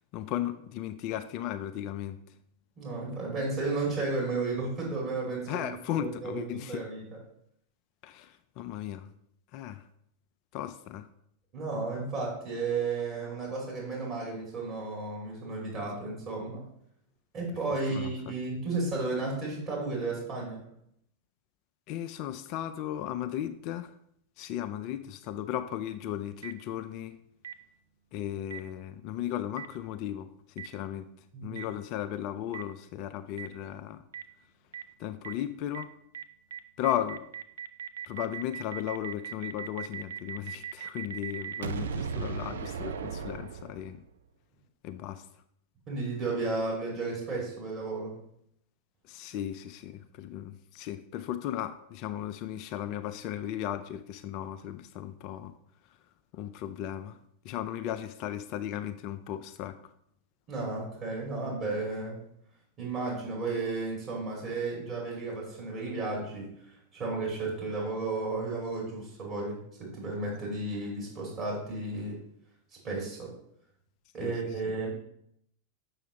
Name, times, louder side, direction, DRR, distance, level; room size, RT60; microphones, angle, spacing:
voice 1, 0.1-2.2 5.5-6.9 8.0-9.1 9.5-9.9 10.5-11.1 17.7-18.3 21.9-23.9 24.4-27.2 28.1-31.1 31.4-34.0 35.0-35.9 36.8-37.3 38.1-44.0 44.8-45.3 49.0-55.6 56.3-57.2 57.4-59.9 74.2-74.3 74.6-74.8, left 11 dB, 40° left, 10 dB, 0.3 m, -36 dB
voice 2, 2.8-5.7 6.0-6.4 6.7-7.0 11.5-16.6 17.3-20.7 31.3-31.6 45.9-48.2 60.5-62.2 62.8-72.2 72.8-73.3 74.1-74.9, right 3 dB, 35° right, -4 dB, 2.4 m, -33 dB
Boom, 26.4-26.5 27.4-27.5 28.5-28.6 29.6-29.7 30.6-30.7 31.6-31.7 32.5-32.6 33.4-33.5 34.1-34.2 34.7-34.8 35.2-35.3 35.7-35.8 36.1-36.2 36.5-44.1, right 7 dB, 65° right, 0.4 m, -37 dB
7.0 x 5.7 x 3.0 m, 0.72 s
figure-of-eight pair, 90°, 0 cm